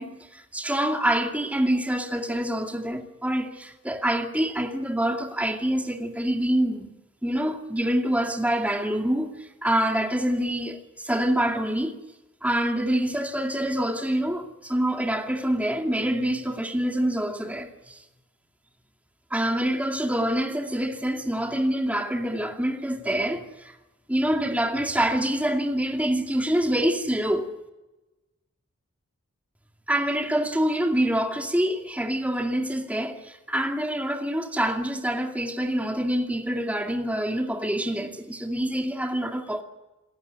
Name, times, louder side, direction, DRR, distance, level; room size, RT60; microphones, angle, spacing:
voice 1, 0.0-6.9 7.2-12.0 12.4-18.0 19.3-23.8 24.1-27.5 29.9-39.6, right 1 dB, 5° right, 2.3 m, -26 dB
28.0 x 15.0 x 9.9 m
head